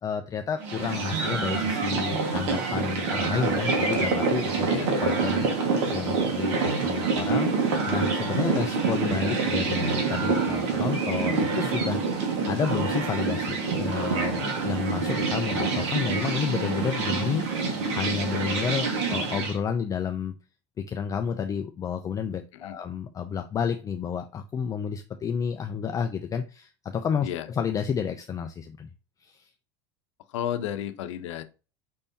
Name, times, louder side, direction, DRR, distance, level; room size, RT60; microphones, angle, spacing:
voice 1, 0.0-4.7 5.0-7.5 7.9-12.0 12.5-20.3 20.8-28.9 29.2-29.5, left 7 dB, 20° left, 0.4 m, -31 dB
sound 1, 0.6-19.6, right 4 dB, 80° right, 1.6 m, -26 dB
voice 2, 30.3-31.4, left 10 dB, 85° left, 0.7 m, -32 dB
5.3 x 3.5 x 2.8 m
supercardioid pair, 115°, 15 cm